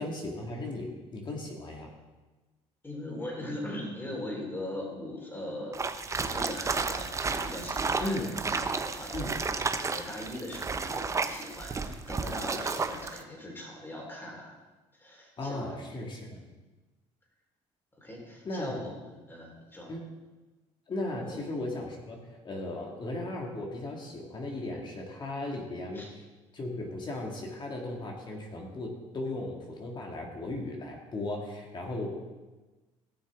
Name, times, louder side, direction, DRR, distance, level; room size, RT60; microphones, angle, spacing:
voice 1, 0.0-1.9 8.0-8.3 9.1-9.4 15.4-16.4 18.4-18.8 19.9-20.0 20.9-26.1 26.5-32.2, left 2 dB, 35° left, 0 dB, 1.9 m, -36 dB
voice 2, 2.8-5.8 6.1-14.5 15.0-15.8 16.3-16.5 18.0-19.9 21.2-21.4 25.9-26.1, left 1 dB, 15° left, -1 dB, 3.7 m, -40 dB
sound 1, 5.7-13.2, right 4 dB, 25° right, 0.7 m, -32 dB
16.5 x 6.5 x 3.6 m, 1.2 s
supercardioid pair, 85°, 13 cm